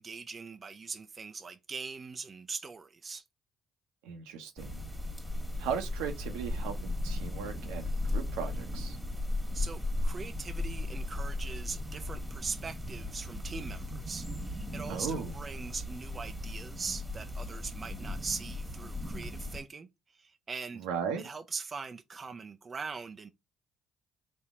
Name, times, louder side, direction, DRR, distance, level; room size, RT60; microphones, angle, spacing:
voice 1, 0.0-3.2 9.5-20.9 21.1-23.3, right 5 dB, 35° right, 0.6 m, -41 dB
voice 2, 4.0-4.8 5.6-9.0 14.9-15.3 20.8-21.3, right 7 dB, 80° right, 1.0 m, -37 dB
sound 1, 4.6-19.6, left 1 dB, 5° right, 1.6 m, -36 dB
4.3 x 2.8 x 3.7 m
hypercardioid pair, 55°, 0 cm